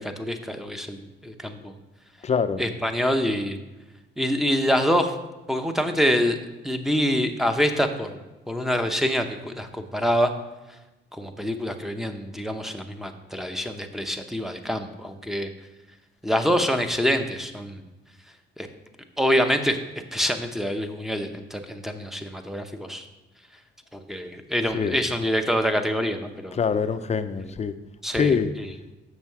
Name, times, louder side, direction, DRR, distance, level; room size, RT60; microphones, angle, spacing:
voice 1, 0.0-1.7 2.6-3.6 4.2-5.1 5.5-6.4 6.6-8.2 8.5-10.3 11.1-15.5 16.2-17.8 18.6-18.7 19.2-19.8 20.1-23.1 23.9-26.6 27.4-27.5 28.0-28.7, equal, ahead, 6 dB, 0.8 m, -26 dB
voice 2, 2.2-2.6 24.7-25.0 26.6-27.7 28.1-28.5, left 6 dB, 35° left, 10 dB, 0.5 m, -24 dB
7.3 x 6.3 x 4.7 m, 1.1 s
cardioid pair, 90°, 20 cm